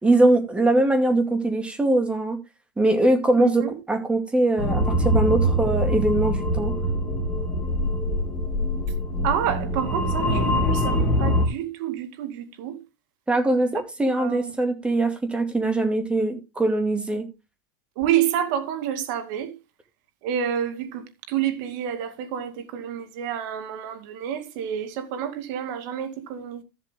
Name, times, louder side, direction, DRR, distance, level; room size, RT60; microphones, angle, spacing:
voice 1, 0.0-2.4 2.8-6.8 13.3-17.3, right 2 dB, 10° right, 2.4 m, -22 dB
voice 2, 3.4-3.7 9.2-12.8 14.1-14.5 18.0-19.5 20.2-26.6, right 9 dB, 60° right, 2.3 m, -28 dB
sound 1, 4.6-11.5, equal, 5° left, 3.5 m, -24 dB
13.5 x 7.6 x 3.7 m
supercardioid pair, 140°, 12 cm